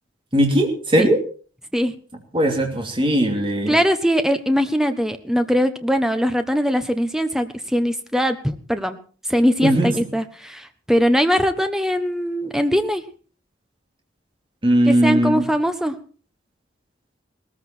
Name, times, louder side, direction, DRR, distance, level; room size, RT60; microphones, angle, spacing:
voice 1, 0.3-1.2 2.3-3.8 9.6-10.0 14.6-15.4, right 1 dB, 25° right, 2 dB, 2.7 m, -19 dB
voice 2, 3.7-9.0 9.3-13.0 14.9-16.0, equal, 5° right, 8 dB, 1.2 m, -21 dB
19.0 x 14.0 x 4.5 m, 0.39 s
head